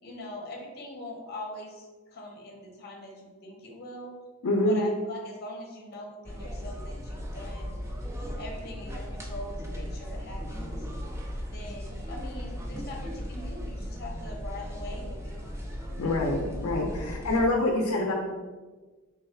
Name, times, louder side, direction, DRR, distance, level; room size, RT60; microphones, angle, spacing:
voice 1, 0.0-4.2 4.6-7.7 8.4-10.8 11.5-15.4, left 1 dB, 50° left, 1 dB, 0.8 m, -42 dB
voice 2, 4.4-4.8 16.0-18.1, left 1 dB, 75° left, 0 dB, 0.5 m, -26 dB
sound 1, 6.2-17.5, equal, 15° right, 0.4 m, -37 dB
3.4 x 2.3 x 4.2 m, 1.3 s
head